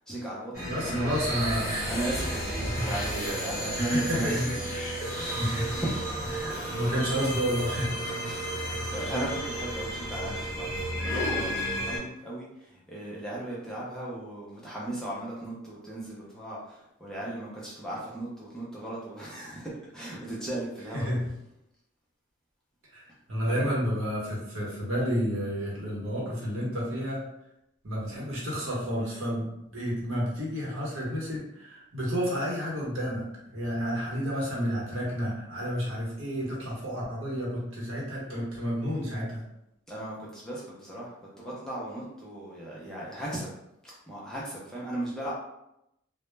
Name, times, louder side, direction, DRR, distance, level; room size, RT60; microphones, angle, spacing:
voice 1, 0.1-1.1 1.8-4.7 5.0-6.3 8.0-11.6 11.8-21.1 23.4-23.6 39.9-43.5 43.8-45.3, right 1 dB, 5° left, -6 dB, 0.4 m, -36 dB
sound 1, 0.5-12.0, equal, 15° right, 1.2 m, -32 dB
voice 2, 0.7-1.9 2.6-2.9 3.8-4.4 4.7-5.0 5.4-5.8 6.3-7.9 8.7-8.8 20.9-21.2 22.9-23.0 23.3-27.2 27.8-29.5 29.7-33.2 33.5-39.4, equal, 70° right, -5 dB, 0.9 m, -30 dB
2.1 x 2.0 x 3.1 m, 0.84 s
head